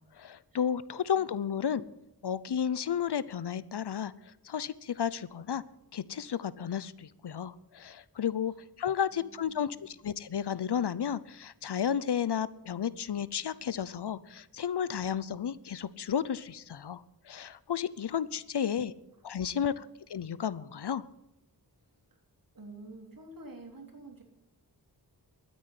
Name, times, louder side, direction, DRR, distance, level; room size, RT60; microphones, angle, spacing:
voice 1, 0.0-1.8 2.2-5.6 5.9-18.9 19.2-21.1, left 8 dB, 75° left, 18 dB, 0.7 m, -33 dB
voice 2, 1.1-1.9 8.5-8.6 9.1-9.9 18.0-18.2 18.7-19.1 19.5-19.9 21.8-22.2 22.5-24.2, right 2 dB, 55° right, 2 dB, 3.5 m, -51 dB
12.5 x 9.6 x 9.5 m, 0.89 s
wide cardioid pair, 70°, 40 cm